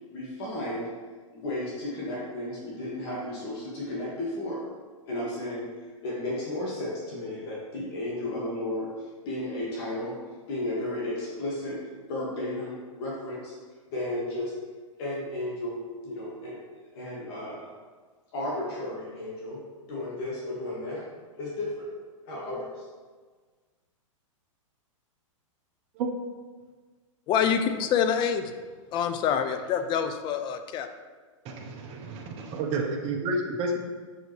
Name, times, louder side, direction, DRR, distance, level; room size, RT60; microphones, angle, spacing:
voice 1, 0.1-0.9 1.3-4.6 5.1-10.2 10.5-11.8 12.1-13.5 13.9-14.5 15.0-15.8 16.0-16.6 16.9-17.7 18.3-21.0 21.4-21.9 22.2-22.9, left 1 dB, 50° left, -5 dB, 1.7 m, -33 dB
voice 2, 27.3-28.6 28.9-30.9, left 8 dB, 25° left, 8 dB, 0.4 m, -26 dB
voice 3, 31.4-33.8, right 2 dB, 35° right, 1 dB, 1.0 m, -30 dB
6.2 x 5.2 x 3.2 m, 1.4 s
hypercardioid pair, 130°, 17 cm